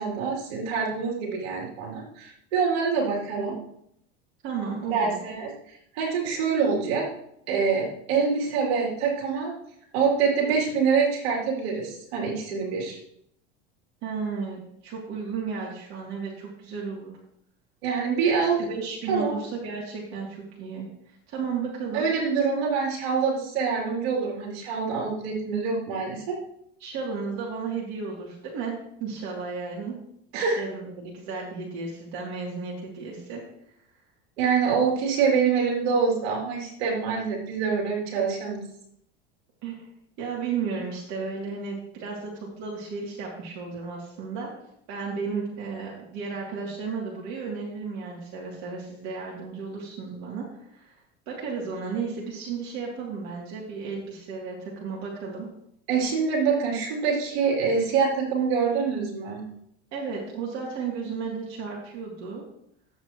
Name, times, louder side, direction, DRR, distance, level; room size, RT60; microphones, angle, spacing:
voice 1, 0.0-3.6 4.9-5.5 5.9-7.0 7.5-9.5 9.9-13.0 17.8-18.6 19.1-19.3 21.9-26.4 30.3-30.6 34.4-38.6 55.9-59.4, right 5 dB, 75° right, -2 dB, 3.3 m, -25 dB
voice 2, 4.4-5.2 14.0-17.1 18.7-22.0 26.8-30.0 30.6-33.4 39.6-39.9 40.2-44.5 44.9-50.5 50.7-50.9 51.3-55.5 59.9-62.4, right 5 dB, 60° right, -4 dB, 2.8 m, -33 dB
11.5 x 8.0 x 3.1 m, 0.72 s
hypercardioid pair, 95°, 31 cm